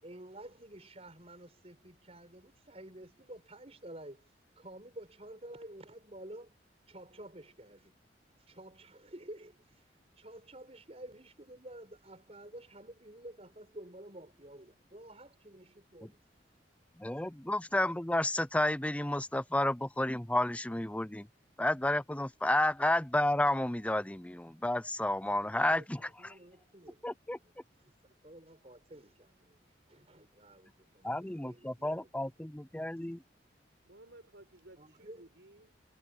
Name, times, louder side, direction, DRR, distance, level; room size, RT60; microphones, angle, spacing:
voice 1, 0.0-6.5 6.9-7.9 8.4-9.9 10.2-16.2 25.2-32.3 32.6-32.7 34.8-35.2, right 1 dB, 35° right, 5.9 m, -51 dB
voice 2, 17.0-21.3 21.6-26.4 27.0-27.4 31.0-33.2, left 1 dB, 5° left, 0.6 m, -31 dB
voice 3, 33.8-35.8, right 1 dB, 80° right, 5.1 m, -57 dB
head